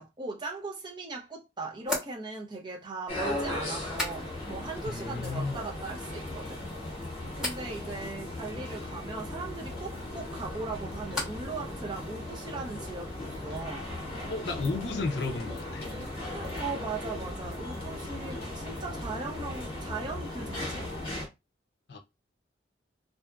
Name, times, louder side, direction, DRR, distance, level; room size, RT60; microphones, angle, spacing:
voice 1, 0.0-6.6 7.4-13.9 16.3-20.9, right 3 dB, 25° right, 0.6 m, -39 dB
sound 1, 0.6-0.7 1.8-4.7 4.9-5.5 5.9-6.5 7.3-7.7 10.1-11.6 11.8-12.4, left 2 dB, 5° right, 1.0 m, -39 dB
sound 2, 3.1-21.3, left 1 dB, 35° left, 1.0 m, -37 dB
voice 2, 4.8-5.6 14.3-15.9 21.9-22.0, left 3 dB, 65° left, 0.5 m, -33 dB
Bass guitar, 10.7-12.1 12.5-16.9 17.3-20.3, right 1 dB, 70° right, 0.8 m, -51 dB
2.7 x 2.5 x 2.2 m
head